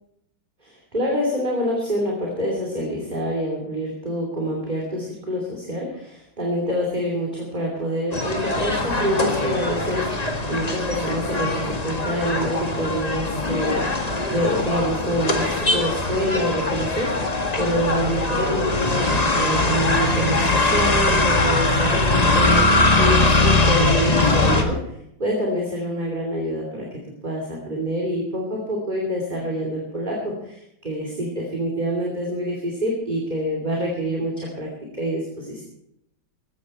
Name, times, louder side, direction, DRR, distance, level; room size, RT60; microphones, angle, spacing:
voice 1, 0.9-24.8 25.2-26.9 27.2-34.7 34.9-35.6, equal, 25° right, -2 dB, 3.0 m, -26 dB
sound 1, 8.1-24.6, left 2 dB, 20° left, 1.5 m, -21 dB
16.5 x 13.5 x 4.3 m, 0.78 s
omnidirectional pair, 2.0 m